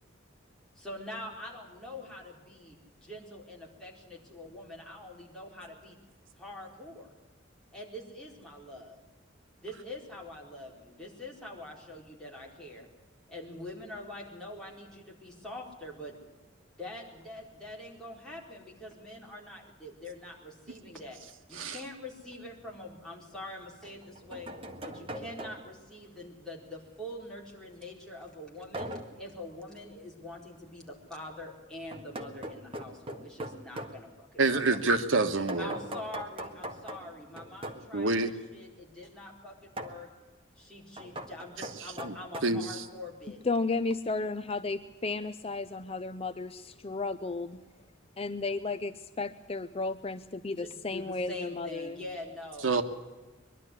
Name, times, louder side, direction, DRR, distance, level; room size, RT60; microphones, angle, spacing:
voice 1, 0.7-6.0 6.3-7.1 7.7-9.0 9.6-12.9 13.3-16.2 16.7-21.2 21.5-24.5 24.8-34.8 35.6-40.1 40.5-43.4 50.6-52.8, left 1 dB, 5° left, -3 dB, 4.4 m, -44 dB
sound 1, 22.5-22.6 23.8-25.9 28.7-29.2 31.9-34.0 35.5-37.9 39.8-40.0 41.0-42.4, right 1 dB, 30° right, 1.6 m, -41 dB
voice 2, 34.4-35.7 37.9-38.3 42.0-42.1 42.4-42.8 52.6-52.8, right 3 dB, 85° right, 9 dB, 1.4 m, -27 dB
voice 3, 43.4-47.6 48.2-52.0, left 3 dB, 30° left, 10 dB, 0.6 m, -33 dB
22.5 x 12.0 x 9.8 m, 1.2 s
head